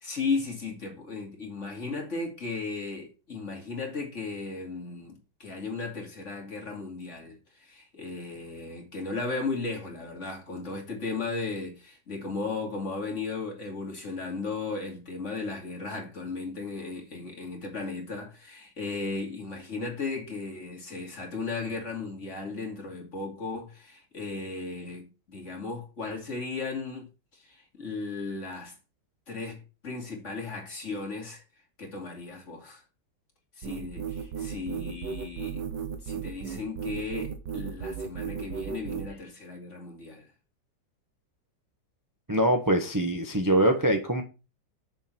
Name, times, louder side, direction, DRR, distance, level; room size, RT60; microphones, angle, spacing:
voice 1, 0.0-5.1 5.4-28.7 29.3-31.4 31.8-32.8 33.6-35.7 36.0-40.3, left 3 dB, 40° left, 2.7 m, -36 dB
sound 1, 33.6-39.1, right 7 dB, 80° right, 1.7 m, -35 dB
voice 2, 42.3-44.2, right 1 dB, 15° right, 0.7 m, -23 dB
7.0 x 6.9 x 4.4 m
omnidirectional pair, 1.9 m